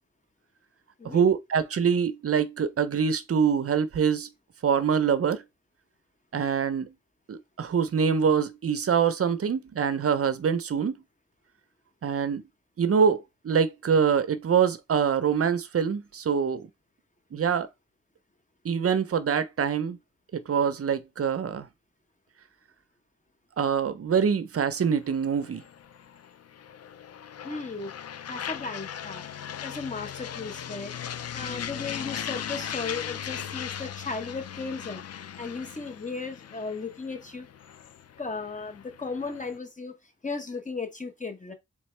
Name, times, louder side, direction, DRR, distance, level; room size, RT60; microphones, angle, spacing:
voice 1, 1.0-4.3 4.6-5.4 6.3-6.9 7.3-11.0 12.0-12.4 12.8-16.7 17.3-17.7 18.6-20.0 20.3-21.7 23.6-25.6, right 7 dB, 50° right, 0.6 m, -25 dB
sound 1, 24.7-39.6, left 9 dB, 55° left, 0.5 m, -39 dB
voice 2, 27.4-27.9 28.3-29.3 29.6-35.0 35.4-37.5 38.2-39.9 40.2-41.5, left 4 dB, 25° left, 1.0 m, -36 dB
3.9 x 3.5 x 3.2 m
wide cardioid pair, 95°, 29 cm